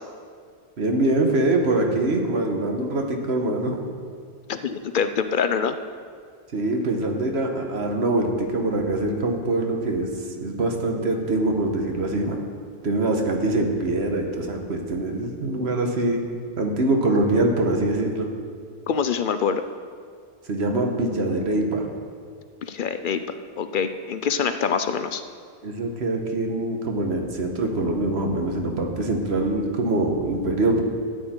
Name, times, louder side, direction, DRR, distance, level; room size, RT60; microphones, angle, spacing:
voice 1, 0.8-3.8 6.5-10.1 10.4-12.4 12.8-16.3 16.6-18.3 20.5-21.9 25.6-30.8, right 2 dB, 85° right, 2 dB, 1.5 m, -24 dB
voice 2, 4.5-5.7 18.9-19.6 22.7-23.2 23.6-25.2, left 6 dB, 60° left, 10 dB, 0.6 m, -25 dB
13.5 x 8.9 x 4.4 m, 2.1 s
omnidirectional pair, 1.1 m